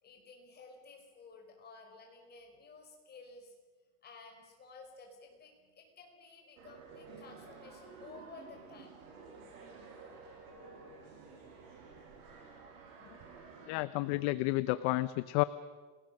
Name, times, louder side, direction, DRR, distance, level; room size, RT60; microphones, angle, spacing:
voice 1, 0.0-3.5 4.0-9.0, left 4 dB, 20° left, 1 dB, 5.2 m, -54 dB
sound 1, 6.6-13.7, right 4 dB, 70° right, 7.8 m, -52 dB
voice 2, 13.7-15.4, left 19 dB, 50° left, 15 dB, 0.7 m, -31 dB
29.5 x 19.5 x 6.6 m, 1.4 s
supercardioid pair, 165°, 46 cm